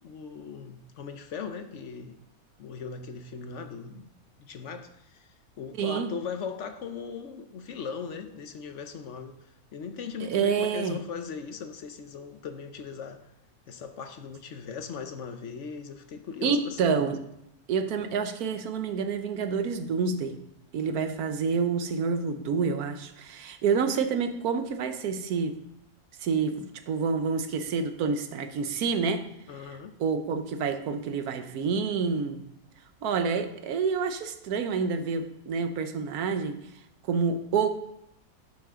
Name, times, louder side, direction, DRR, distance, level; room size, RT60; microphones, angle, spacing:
voice 1, 0.0-2.2 2.6-4.1 4.4-5.3 5.6-9.4 9.7-13.2 13.7-17.0 29.5-29.9, left 6 dB, 60° left, 8 dB, 1.0 m, -38 dB
voice 2, 5.8-6.1 10.2-11.0 16.4-17.2 17.7-20.4 20.7-25.6 26.2-29.2 30.0-32.4 33.0-36.6 37.1-37.7, right 5 dB, 90° right, 8 dB, 1.3 m, -28 dB
11.5 x 6.0 x 3.7 m, 0.80 s
omnidirectional pair, 1.5 m